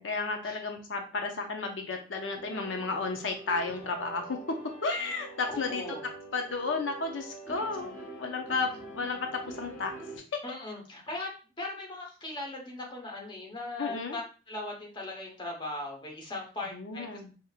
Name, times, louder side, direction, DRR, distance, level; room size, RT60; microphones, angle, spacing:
voice 1, 0.0-4.4 4.8-5.8 6.3-7.9 8.2-9.9 13.8-14.2 16.7-17.3, left 4 dB, 80° left, 4 dB, 0.6 m, -33 dB
sound 1, 2.4-10.2, right 2 dB, 45° left, 2.0 m, -45 dB
voice 2, 5.5-6.0 7.8-7.9 10.4-11.3 11.6-14.2 14.5-17.3, left 2 dB, 25° left, 0 dB, 1.0 m, -39 dB
5.1 x 2.8 x 2.4 m, 0.36 s
head